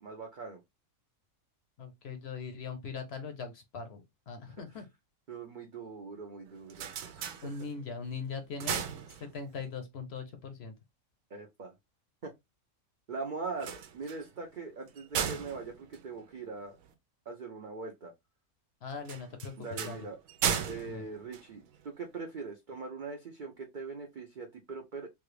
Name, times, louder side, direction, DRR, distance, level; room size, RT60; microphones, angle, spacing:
voice 1, 0.0-0.6 5.3-6.9 7.1-7.5 11.3-11.7 12.2-12.3 13.1-16.8 17.3-18.1 19.6-20.2 20.7-25.1, right 4 dB, 50° right, 0.6 m, -41 dB
voice 2, 1.8-4.9 7.4-10.7 18.8-20.0 20.8-21.0, left 5 dB, 55° left, 0.8 m, -41 dB
sound 1, 6.5-8.0 8.4-9.7 13.5-16.9 19.0-22.1, right 8 dB, 75° right, 1.0 m, -37 dB
3.2 x 2.4 x 3.2 m
omnidirectional pair, 1.5 m